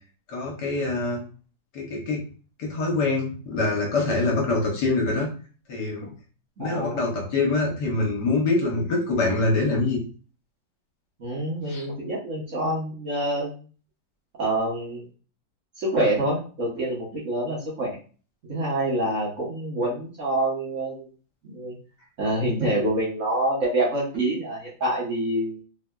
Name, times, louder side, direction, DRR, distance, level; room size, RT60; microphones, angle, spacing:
voice 1, 0.3-1.2 1.7-2.2 2.6-5.3 5.7-6.1 6.6-10.0 11.7-11.8, left 3 dB, 70° left, -1 dB, 1.5 m, -24 dB
voice 2, 6.6-7.0 11.2-13.5 14.4-15.1 15.8-17.9 18.5-21.1 21.4-21.7 22.2-25.6, right 1 dB, 50° right, -5 dB, 1.1 m, -26 dB
3.5 x 2.6 x 2.2 m, 0.38 s
omnidirectional pair, 2.0 m